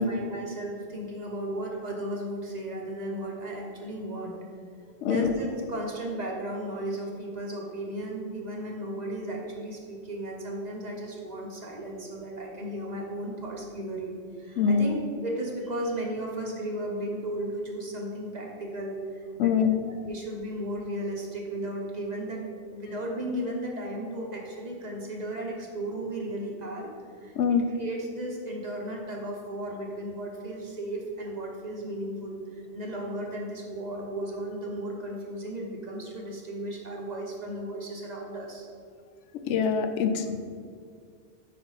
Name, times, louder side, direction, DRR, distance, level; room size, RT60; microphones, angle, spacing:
voice 1, 0.0-4.4 5.0-19.5 20.1-22.4 22.7-26.9 27.2-38.7, right 1 dB, 40° right, -1 dB, 0.9 m, -35 dB
voice 2, 5.0-5.3 14.6-14.9 19.4-19.7 27.4-27.6 39.5-40.5, left 6 dB, 85° left, 7 dB, 0.9 m, -24 dB
5.1 x 4.2 x 5.5 m, 2.1 s
omnidirectional pair, 1.2 m